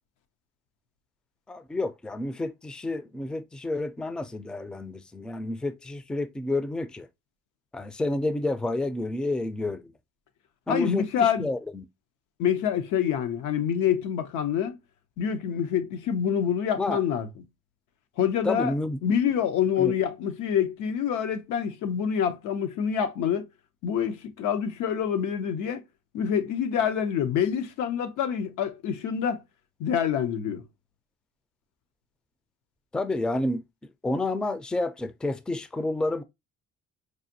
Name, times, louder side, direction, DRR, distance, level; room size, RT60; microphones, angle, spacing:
voice 1, 1.5-7.1 7.7-9.9 10.7-11.8 16.8-17.0 18.4-19.0 19.8-19.9 32.9-33.6 34.0-36.2, left 2 dB, 5° left, 0.3 m, -29 dB
voice 2, 10.7-11.5 12.4-14.8 15.2-17.3 18.2-18.7 19.0-23.5 23.8-25.8 26.1-29.4 29.8-30.6, left 8 dB, 90° left, 0.6 m, -26 dB
4.7 x 2.5 x 2.6 m
cardioid pair, 90°, 30 cm